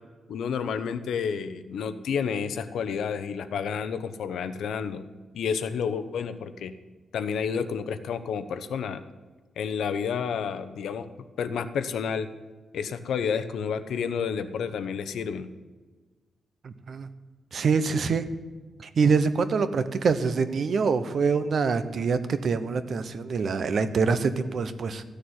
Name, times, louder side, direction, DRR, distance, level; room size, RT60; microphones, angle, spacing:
voice 1, 0.3-5.0 5.3-6.7 7.1-9.0 9.6-11.1 11.4-12.3 12.7-15.5, left 6 dB, 80° left, 11 dB, 0.9 m, -30 dB
voice 2, 16.6-17.1 17.5-18.2 18.8-25.0, right 5 dB, 45° right, 12 dB, 0.8 m, -25 dB
14.0 x 6.7 x 9.5 m, 1.3 s
wide cardioid pair, 180°, 0 cm